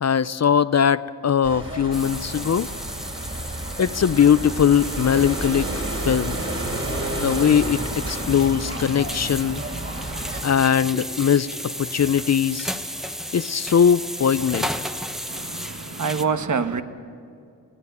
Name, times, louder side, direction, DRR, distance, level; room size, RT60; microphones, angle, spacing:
voice 1, 0.0-2.7 3.8-5.7 6.0-6.4 7.2-7.8 8.1-9.6 10.4-12.7 13.3-14.7, left 8 dB, 45° left, 0.5 m, -20 dB
sound 1, 1.4-10.4, right 1 dB, 35° right, 3.5 m, -31 dB
sound 2, 1.9-16.2, equal, ahead, 1.1 m, -34 dB
voice 2, 15.3-16.8, right 5 dB, 55° right, 1.2 m, -26 dB
19.0 x 16.5 x 9.3 m
cardioid pair, 65°, 37 cm